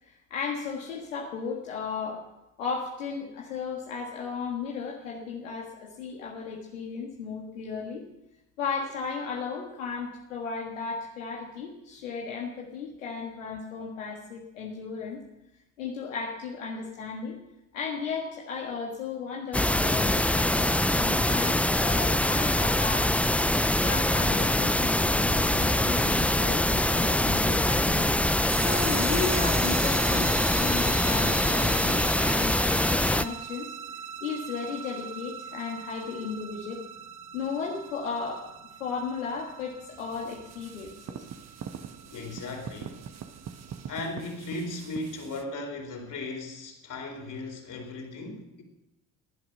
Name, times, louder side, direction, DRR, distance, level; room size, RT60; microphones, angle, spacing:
voice 1, 0.1-2.2 2.6-8.1 8.6-15.2 15.8-17.4 17.7-23.1 23.8-28.1 28.4-33.7 34.2-36.8 37.3-38.5 38.8-41.2, left 5 dB, 85° left, -2 dB, 1.7 m, -35 dB
sound 1, 19.5-33.2, left 1 dB, 5° left, 0.6 m, -24 dB
sound 2, 28.5-43.9, right 9 dB, 65° right, 1.6 m, -40 dB
sound 3, 39.9-45.4, right 7 dB, 45° right, 1.3 m, -43 dB
voice 2, 42.1-43.0 43.9-48.6, left 2 dB, 50° left, 3 dB, 4.3 m, -37 dB
17.5 x 11.0 x 5.4 m, 0.92 s
hypercardioid pair, 55°, 38 cm